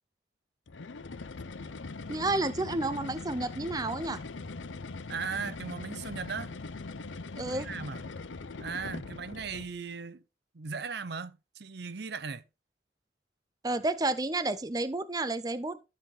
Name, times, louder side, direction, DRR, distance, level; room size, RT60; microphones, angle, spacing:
sound 1, 0.7-9.8, left 3 dB, 85° left, 0.8 m, -41 dB
voice 1, 2.1-4.2 7.4-7.7 13.6-15.8, right 2 dB, 20° right, 0.6 m, -31 dB
voice 2, 5.1-6.5 7.4-8.0 8.6-10.2 10.5-12.4, right 5 dB, 60° right, 0.7 m, -37 dB
12.5 x 5.9 x 3.8 m
head